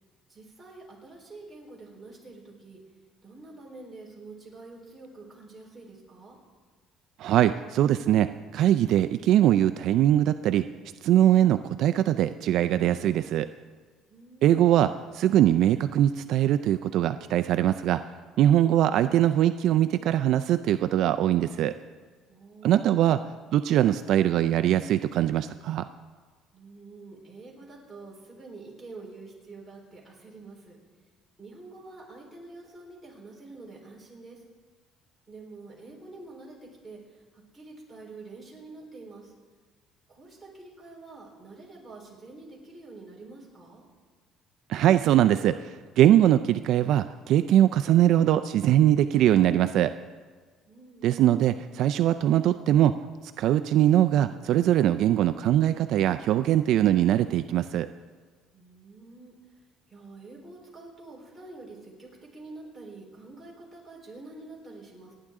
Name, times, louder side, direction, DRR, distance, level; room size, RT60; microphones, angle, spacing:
voice 1, 0.3-2.8 3.2-6.4 14.1-14.6 22.3-23.1 26.5-30.8 31.4-34.4 35.3-39.3 40.1-43.8 50.7-51.2 58.5-59.6 59.9-65.1, right 3 dB, 5° right, -5 dB, 3.9 m, -47 dB
voice 2, 7.2-10.7 11.0-13.5 14.4-18.0 18.4-21.7 22.6-23.2 23.5-25.9 44.7-49.9 51.0-52.9 53.4-57.9, right 12 dB, 55° right, 10 dB, 0.4 m, -22 dB
29.0 x 10.0 x 3.7 m, 1.4 s
cardioid pair, 170°, 0 cm